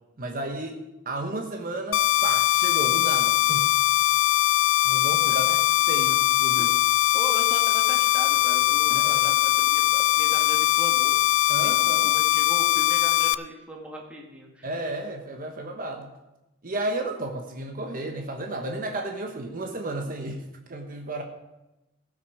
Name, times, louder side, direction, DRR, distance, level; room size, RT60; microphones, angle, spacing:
voice 1, 0.2-3.7 4.8-5.5 5.9-6.7 8.9-9.3 11.5-12.1 14.6-16.1 16.6-21.2, right 2 dB, 45° right, 3 dB, 1.2 m, -33 dB
sound 1, 1.9-13.3, left 15 dB, 65° left, 0.4 m, -21 dB
voice 2, 5.2-5.6 5.9-6.2 6.5-6.7 7.1-11.2 11.5-14.7, equal, 5° right, -2 dB, 1.8 m, -39 dB
18.0 x 6.3 x 4.9 m, 0.99 s
head